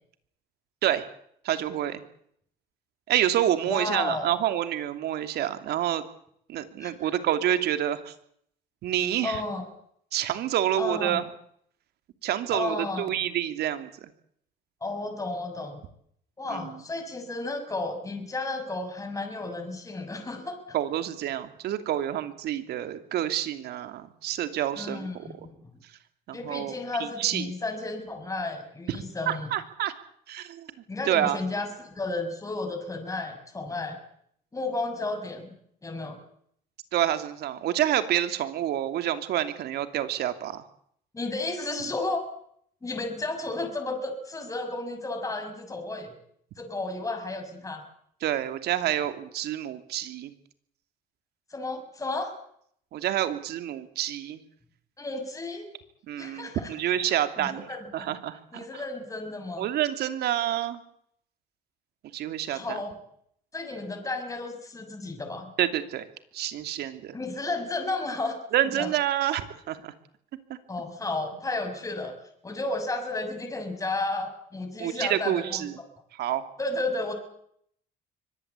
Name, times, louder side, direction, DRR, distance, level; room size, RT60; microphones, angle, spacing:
voice 1, 1.4-2.0 3.1-6.0 6.5-8.1 8.8-9.4 10.1-11.2 12.2-14.1 16.5-16.7 20.7-25.3 26.3-27.5 29.3-29.9 30.3-30.7 31.1-31.4 36.9-40.6 48.2-50.3 52.9-54.4 56.1-57.6 57.9-58.7 59.6-60.8 62.1-62.8 65.6-66.1 66.3-67.1 68.5-69.9 74.8-75.8 76.2-76.4, right 11 dB, 70° right, 10 dB, 2.9 m, -28 dB
voice 2, 3.7-4.3 6.8-7.1 9.2-9.6 10.8-11.2 12.5-13.2 14.8-15.8 16.4-20.8 24.8-25.7 26.3-29.5 30.9-34.0 34.5-35.5 35.8-36.2 41.1-42.3 42.8-46.1 46.6-47.8 51.5-52.3 55.0-55.7 56.2-56.7 57.4-58.1 58.5-59.7 62.5-63.0 63.5-65.5 67.1-68.4 68.6-68.9 70.7-72.2 72.4-75.6 76.6-77.1, left 2 dB, 20° left, 5 dB, 6.8 m, -33 dB
24.0 x 19.0 x 8.4 m, 0.68 s
cardioid pair, 110°, 17 cm